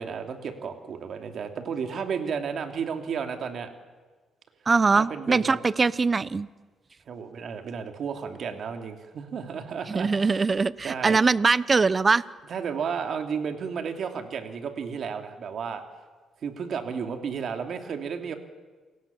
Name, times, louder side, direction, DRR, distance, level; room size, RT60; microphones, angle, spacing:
voice 1, 0.0-3.7 4.9-5.6 7.1-10.4 10.8-11.2 12.5-15.8 16.4-18.3, right 6 dB, 60° right, 5 dB, 3.1 m, -33 dB
voice 2, 4.7-6.5 9.9-12.2, right 4 dB, 30° right, 18 dB, 0.8 m, -22 dB
28.5 x 18.5 x 7.3 m, 1.4 s
cardioid pair, 90°, 0 cm